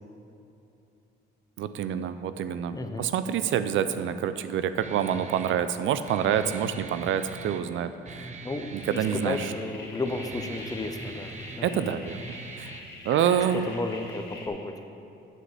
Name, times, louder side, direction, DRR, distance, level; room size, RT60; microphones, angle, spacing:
voice 1, 1.6-8.3 8.7-9.5 11.6-12.2 12.6-12.7 13.0-13.7, right 9 dB, 75° right, 11 dB, 0.5 m, -27 dB
voice 2, 2.7-3.1 8.4-8.8 9.2-11.9 13.7-14.7, left 2 dB, 20° left, 6 dB, 0.8 m, -33 dB
Guitar, 4.8-12.8, right 3 dB, 35° right, 0.9 m, -42 dB
sound 1, 8.8-14.5, left 2 dB, 55° left, 2.1 m, -44 dB
7.7 x 6.5 x 7.4 m, 2.8 s
cardioid pair, 90°, 20 cm